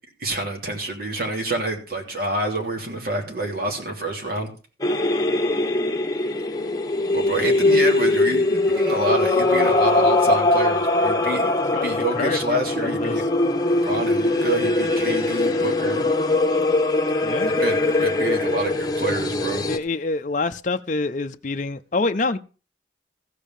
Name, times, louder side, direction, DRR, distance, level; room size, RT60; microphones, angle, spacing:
voice 1, 0.2-4.5 7.1-13.3 13.8-16.1 17.4-19.7, right 2 dB, 55° right, 3.0 m, -27 dB
sound 1, 4.8-19.8, left 2 dB, 20° left, 1.1 m, -21 dB
voice 2, 11.6-13.1 17.2-17.5 19.7-22.4, left 3 dB, 45° left, 0.6 m, -26 dB
15.0 x 5.1 x 7.4 m
head